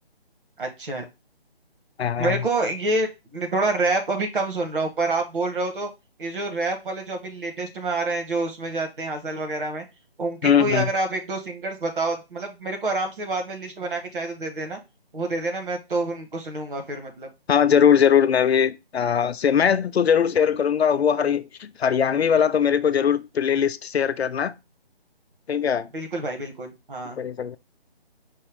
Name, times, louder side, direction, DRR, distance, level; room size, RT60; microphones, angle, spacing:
voice 1, 0.6-1.0 2.2-5.9 6.2-9.8 10.2-14.8 15.1-17.3 25.9-27.2, right 2 dB, 55° right, 1.4 m, -27 dB
voice 2, 2.0-2.4 10.4-10.9 17.5-24.5 25.5-25.9 27.2-27.6, left 8 dB, 85° left, 0.5 m, -20 dB
5.3 x 2.3 x 3.5 m
figure-of-eight pair, 160°, 31 cm